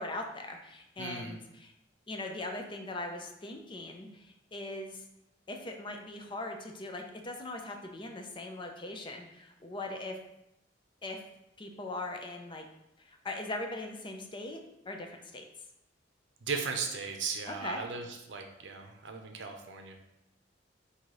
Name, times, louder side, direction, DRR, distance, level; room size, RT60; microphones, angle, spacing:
voice 1, 0.0-1.7 2.1-5.0 5.5-10.2 11.0-11.2 11.6-12.7 13.0-15.5 17.5-17.8, left 2 dB, 25° left, 3 dB, 0.5 m, -40 dB
voice 2, 1.0-1.4 16.4-19.9, right 5 dB, 70° right, 4 dB, 0.6 m, -37 dB
3.8 x 2.7 x 4.8 m, 0.85 s
head